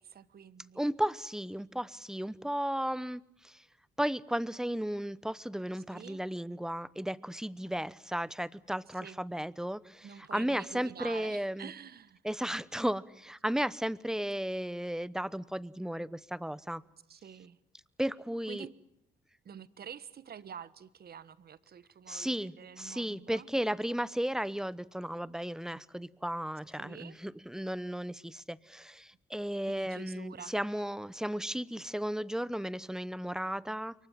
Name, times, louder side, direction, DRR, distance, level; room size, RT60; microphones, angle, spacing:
voice 1, 0.0-0.8 5.9-6.2 7.6-7.7 9.0-9.2 10.0-12.2 17.1-17.6 18.5-18.7 19.4-23.5 26.7-27.2 29.7-30.5, right 8 dB, 50° right, 16 dB, 1.4 m, -48 dB
voice 2, 0.7-3.6 4.0-11.7 12.2-16.8 18.0-18.7 22.1-33.9, equal, 5° right, 19 dB, 0.9 m, -34 dB
27.5 x 23.5 x 7.4 m, 0.76 s
cardioid pair, 90°, 20 cm